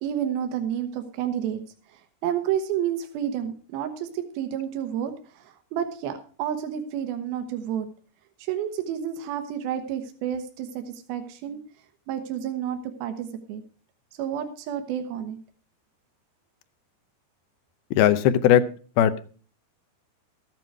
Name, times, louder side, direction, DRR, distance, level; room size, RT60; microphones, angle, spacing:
voice 1, 0.0-1.6 2.2-5.1 5.7-7.9 8.5-10.8 11.1-11.6 12.1-13.6 14.2-15.4, right 9 dB, 80° right, 7 dB, 2.9 m, -30 dB
voice 2, 18.0-18.6 19.0-19.2, left 10 dB, 80° left, 11 dB, 2.6 m, -18 dB
14.0 x 9.2 x 4.5 m, 0.40 s
omnidirectional pair, 4.4 m